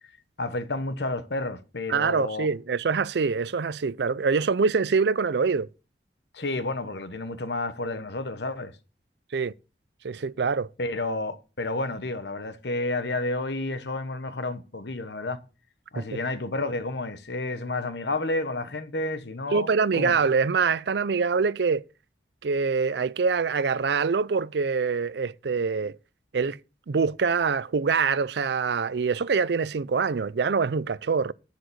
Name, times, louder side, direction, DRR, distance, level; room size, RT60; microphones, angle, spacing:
voice 1, 0.4-2.5 6.3-8.7 10.8-15.4 15.9-20.2, left 2 dB, 80° left, 1.2 m, -31 dB
voice 2, 1.9-5.7 9.3-9.5 10.0-10.7 16.0-16.2 19.5-21.8 22.4-26.0 26.3-26.6 26.9-31.3, right 5 dB, 75° right, 0.5 m, -25 dB
10.5 x 5.0 x 7.8 m
head